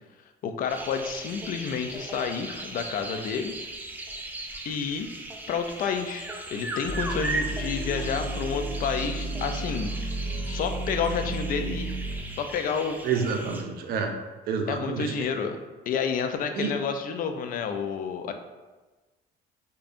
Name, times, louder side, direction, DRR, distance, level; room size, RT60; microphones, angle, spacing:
voice 1, 0.4-3.6 4.7-5.1 5.5-9.9 10.5-11.9 12.4-13.0 14.7-15.6 15.9-18.3, left 6 dB, 55° left, 7 dB, 0.4 m, -30 dB
sound 1, 0.7-13.6, right 2 dB, 10° right, 0.4 m, -37 dB
sound 2, 6.8-12.2, right 2 dB, 40° right, 1.1 m, -32 dB
voice 2, 13.0-14.2 14.5-15.3 16.5-16.7, right 6 dB, 65° right, 4 dB, 0.5 m, -29 dB
5.1 x 2.2 x 2.5 m, 1.2 s
cardioid pair, 110°, 17 cm